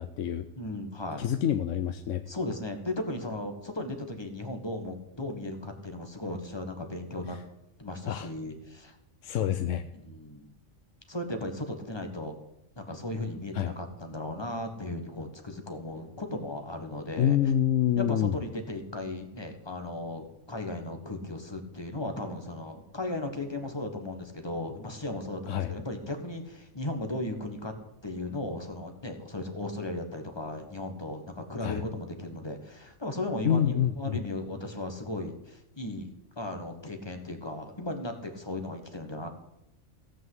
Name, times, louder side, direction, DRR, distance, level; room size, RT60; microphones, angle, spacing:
voice 1, 0.0-0.5 1.2-2.2 8.1-8.3 9.2-9.8 13.5-13.8 17.2-18.4 25.5-25.7 31.6-31.8 33.4-34.2, left 10 dB, 70° left, 9 dB, 1.0 m, -27 dB
voice 2, 0.6-1.2 2.3-7.4 7.8-8.9 9.9-10.5 11.1-12.3 12.8-17.4 18.0-27.7 28.0-39.3, left 1 dB, 20° left, 5 dB, 1.4 m, -36 dB
16.5 x 5.5 x 7.9 m, 0.86 s
omnidirectional pair, 1.4 m